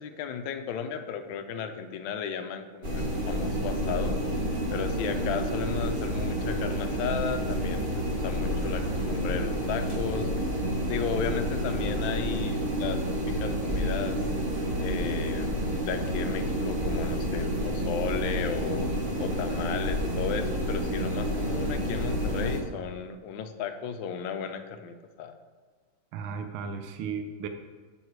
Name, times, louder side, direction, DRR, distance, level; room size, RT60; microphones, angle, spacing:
voice 1, 0.0-4.2 4.7-10.3 10.9-14.2 14.8-18.9 19.2-25.4, left 7 dB, 70° left, 7 dB, 1.4 m, -34 dB
sound 1, 2.8-22.6, equal, 35° right, 1.0 m, -29 dB
voice 2, 26.1-27.5, right 5 dB, 80° right, 7 dB, 1.5 m, -35 dB
7.3 x 7.2 x 4.6 m, 1.5 s
omnidirectional pair, 2.3 m